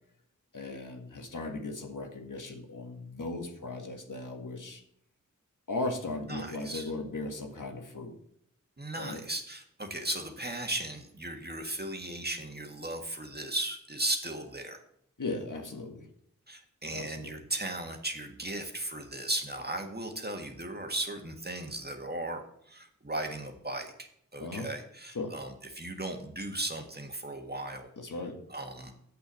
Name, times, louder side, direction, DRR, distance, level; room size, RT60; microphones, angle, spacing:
voice 1, 0.5-4.8 5.7-8.1 8.9-9.2 15.2-16.1 16.9-17.4 24.4-24.7 25.1-25.3 28.0-28.4, left 2 dB, 80° left, 3 dB, 1.7 m, -37 dB
voice 2, 6.3-6.9 8.8-14.8 16.5-22.4 22.7-27.9 28.5-28.9, right 1 dB, 30° right, 3 dB, 1.7 m, -36 dB
8.0 x 6.9 x 6.3 m, 0.69 s
wide cardioid pair, 50°, 31 cm